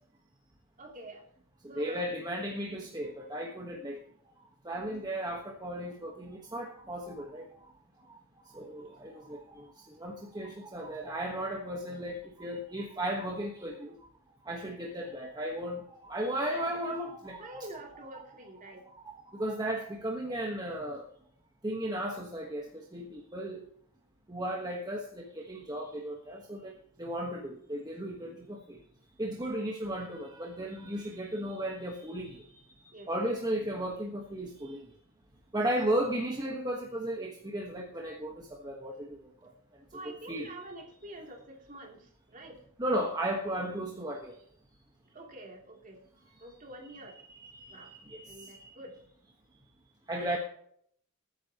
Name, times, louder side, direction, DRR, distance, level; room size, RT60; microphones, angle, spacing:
voice 1, 0.8-1.2 1.7-2.1 16.5-16.8 17.4-18.8 32.9-33.1 39.9-42.6 45.1-46.0 46.4-47.2 47.7-47.9 48.3-49.0 50.1-50.4, right 1 dB, 40° right, 0 dB, 3.1 m, -47 dB
voice 2, 1.7-4.0 4.6-7.5 8.5-14.0 14.4-17.7 18.8-21.0 21.6-23.6 24.3-26.7 27.0-28.8 29.2-32.4 33.1-34.8 35.5-39.2 39.4-39.5 40.0-40.5 42.8-44.3 47.3-48.7 50.1-50.4, right 1 dB, 20° right, 0 dB, 1.4 m, -35 dB
20.0 x 9.6 x 3.0 m, 0.66 s
head